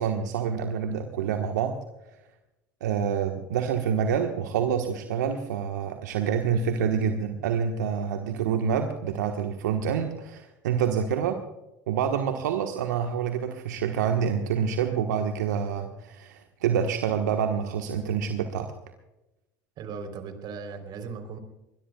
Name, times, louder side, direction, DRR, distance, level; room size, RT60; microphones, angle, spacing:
voice 1, 0.0-1.8 2.8-11.4 11.9-18.7, right 7 dB, 80° right, 5 dB, 1.3 m, -27 dB
voice 2, 19.8-21.4, right 5 dB, 50° right, 7 dB, 3.5 m, -37 dB
21.5 x 21.0 x 2.3 m, 0.95 s
hypercardioid pair, 80°, 9 cm